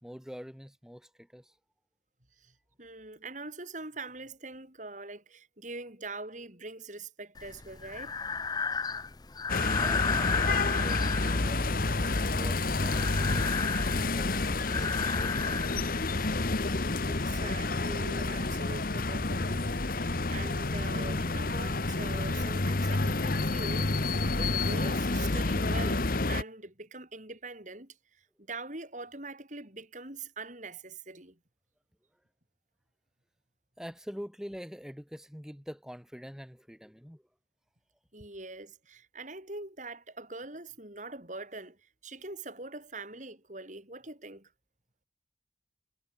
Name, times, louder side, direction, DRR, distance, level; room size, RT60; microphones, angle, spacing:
voice 1, 0.0-1.6 9.6-16.4 33.8-37.2, equal, 5° right, 3.4 m, -46 dB
voice 2, 2.8-8.2 17.1-28.0 28.5-31.4 38.1-44.5, right 2 dB, 45° right, 7.3 m, -43 dB
Breathing, 7.4-16.4, left 5 dB, 20° left, 0.7 m, -34 dB
sound 1, 9.5-26.4, left 2 dB, 50° left, 1.2 m, -29 dB
head